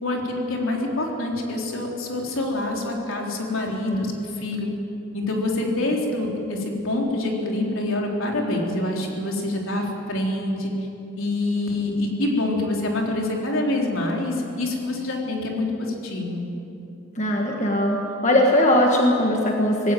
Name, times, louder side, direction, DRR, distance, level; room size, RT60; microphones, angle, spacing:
voice 1, 0.0-4.7 5.1-10.7 11.2-16.4, left 2 dB, 70° left, 0 dB, 3.7 m, -26 dB
voice 2, 17.1-19.9, left 1 dB, 35° left, 0 dB, 1.6 m, -20 dB
19.5 x 16.5 x 9.2 m, 2.8 s
head